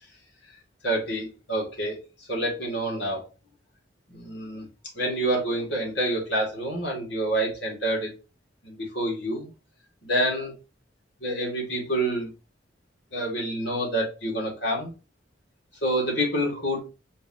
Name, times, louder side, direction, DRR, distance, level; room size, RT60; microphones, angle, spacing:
voice 1, 0.8-2.0 2.3-3.3 4.1-4.7 4.9-8.1 8.6-9.5 10.0-10.5 11.2-12.3 13.1-14.9 15.8-16.8, right 1 dB, 65° left, -2 dB, 2.0 m, -27 dB
4.5 x 2.9 x 2.8 m, 0.31 s
head